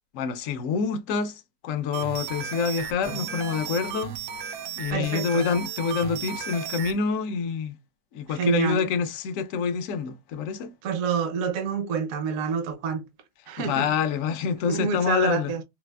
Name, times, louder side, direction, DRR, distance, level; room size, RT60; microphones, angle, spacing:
voice 1, 0.1-4.2 4.8-7.7 8.1-10.7 13.7-15.5, left 6 dB, 70° left, 0.8 m, -27 dB
sound 1, 1.9-7.0, right 8 dB, 85° right, 1.2 m, -35 dB
Drum, 3.1-6.0, right 1 dB, 5° right, 0.4 m, -46 dB
voice 2, 4.9-5.5 8.3-8.9 10.8-13.1 13.5-14.0 14.7-15.6, right 5 dB, 65° right, 0.9 m, -28 dB
4.0 x 2.3 x 2.2 m
omnidirectional pair, 1.7 m